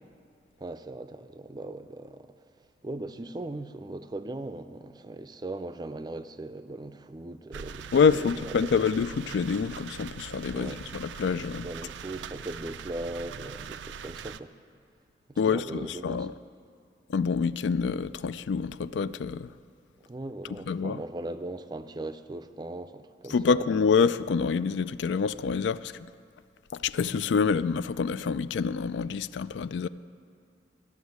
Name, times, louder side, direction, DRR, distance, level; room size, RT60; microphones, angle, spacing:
voice 1, 0.6-2.3 2.8-8.7 10.5-10.8 11.6-14.5 15.3-16.3 20.1-23.7, right 2 dB, 25° right, 0.4 m, -39 dB
sound 1, 7.5-14.4, right 7 dB, 90° right, 0.4 m, -42 dB
voice 2, 7.9-11.7 15.4-16.3 17.1-19.5 20.7-21.0 23.3-25.9 26.7-29.9, left 5 dB, 80° left, 0.4 m, -26 dB
13.0 x 7.1 x 9.5 m
head